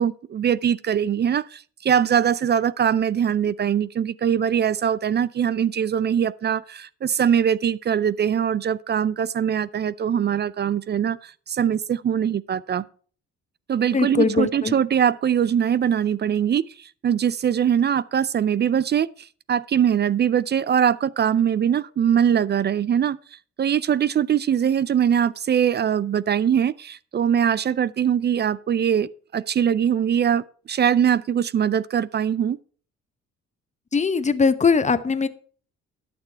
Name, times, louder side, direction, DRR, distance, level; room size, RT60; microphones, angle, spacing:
voice 1, 0.0-11.2 11.5-12.8 13.7-16.6 17.0-19.1 19.5-23.2 23.6-32.6, right 8 dB, 35° right, 0.4 m, -22 dB
voice 2, 13.9-14.7 33.9-35.3, left 5 dB, 25° left, 0.8 m, -20 dB
11.5 x 6.8 x 4.4 m
cardioid pair, 90°, 30 cm